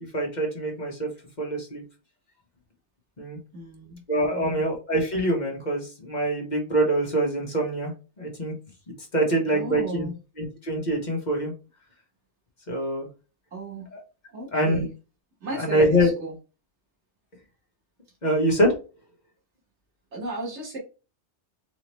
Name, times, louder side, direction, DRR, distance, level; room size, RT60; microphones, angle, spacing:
voice 1, 0.1-1.1 1.4-1.8 3.2-3.4 4.1-8.5 9.1-10.1 10.4-11.5 12.7-13.1 14.5-14.8 15.6-16.1 18.2-18.7, right 1 dB, 40° left, 0 dB, 1.5 m, -24 dB
voice 2, 3.5-4.0 4.3-4.7 9.5-10.2 13.5-13.9 14.3-14.9 15.4-16.3 20.1-20.8, right 1 dB, 85° right, -3 dB, 1.7 m, -35 dB
4.2 x 3.0 x 3.0 m, 0.32 s
omnidirectional pair, 1.1 m